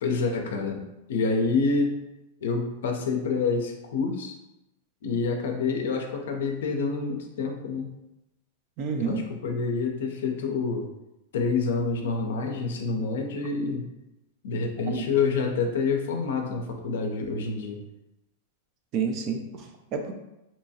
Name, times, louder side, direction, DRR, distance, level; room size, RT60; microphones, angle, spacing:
voice 1, 0.0-0.8 1.1-1.9 2.4-4.4 5.0-7.9 9.0-10.9 11.3-13.9 14.4-17.8, left 4 dB, 75° left, 3 dB, 0.4 m, -27 dB
voice 2, 8.8-9.2 14.9-15.0 18.9-20.1, right 5 dB, 45° right, 5 dB, 0.4 m, -29 dB
2.8 x 2.2 x 2.7 m, 0.93 s
hypercardioid pair, 110°, 0 cm